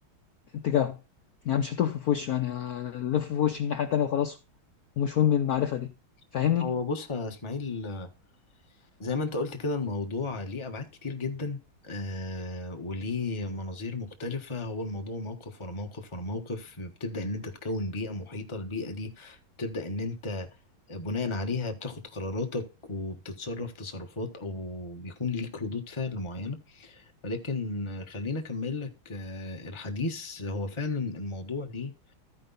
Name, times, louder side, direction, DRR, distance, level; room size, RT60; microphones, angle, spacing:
voice 1, 0.5-1.0 1.5-4.4 5.0-5.9 6.3-6.7, left 9 dB, 60° left, 1.0 m, -26 dB
voice 2, 6.6-8.1 9.0-11.6 11.8-20.5 20.9-31.9, left 3 dB, 20° left, 1.0 m, -34 dB
14.0 x 5.2 x 4.1 m
omnidirectional pair, 2.3 m